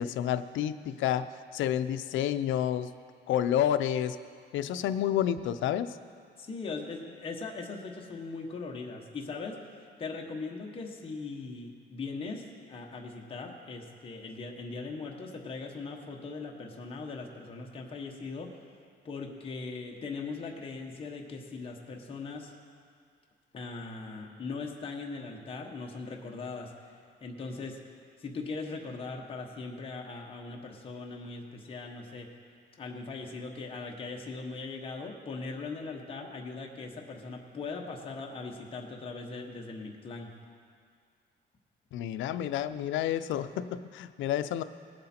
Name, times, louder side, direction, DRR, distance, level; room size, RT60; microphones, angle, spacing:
voice 1, 0.0-2.9 3.3-4.2 4.5-6.0 41.9-44.6, left 10 dB, 80° left, 12 dB, 0.5 m, -29 dB
voice 2, 6.4-18.5 19.0-22.5 23.5-26.7 27.2-27.8 28.2-32.4 32.8-40.3, left 4 dB, 30° left, 0 dB, 1.1 m, -40 dB
18.5 x 7.8 x 4.4 m, 2.1 s
cardioid pair, 155°, 19 cm